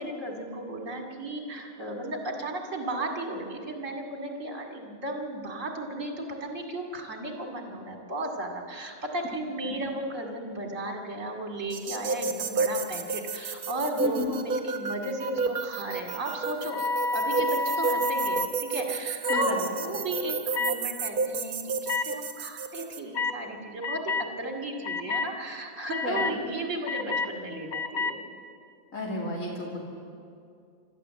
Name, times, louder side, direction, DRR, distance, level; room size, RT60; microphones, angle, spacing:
voice 1, 0.0-16.8 17.1-28.2, right 1 dB, 60° right, 2 dB, 2.9 m, -35 dB
sound 1, 11.7-23.0, right 4 dB, 90° right, 1.6 m, -31 dB
voice 2, 14.0-14.3 19.3-19.7 26.0-26.3 28.9-29.8, left 1 dB, 65° left, -2 dB, 3.2 m, -32 dB
sound 2, 16.7-18.5 19.2-19.5 20.5-20.7 21.9-22.0 23.1-23.4 23.8-24.3 24.8-25.3 25.9-26.3 26.9-27.3 27.7-28.1, left 3 dB, 85° left, 1.3 m, -29 dB
26.5 x 13.0 x 7.7 m, 2.4 s
omnidirectional pair, 1.5 m